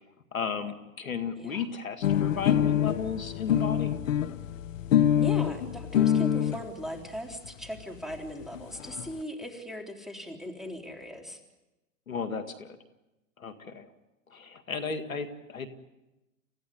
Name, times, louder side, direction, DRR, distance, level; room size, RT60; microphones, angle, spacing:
voice 1, 0.3-3.9 12.1-12.8 13.4-13.9 14.3-15.7, left 6 dB, 90° left, 9 dB, 2.0 m, -34 dB
sound 1, 2.0-6.6 7.4-7.5 7.8-7.9 8.1-8.2 8.4-9.1, left 10 dB, 70° left, 1.2 m, -25 dB
voice 2, 5.2-11.4, equal, ahead, 3 dB, 3.6 m, -39 dB
29.0 x 15.5 x 9.7 m, 1.0 s
hypercardioid pair, 105°, 40 cm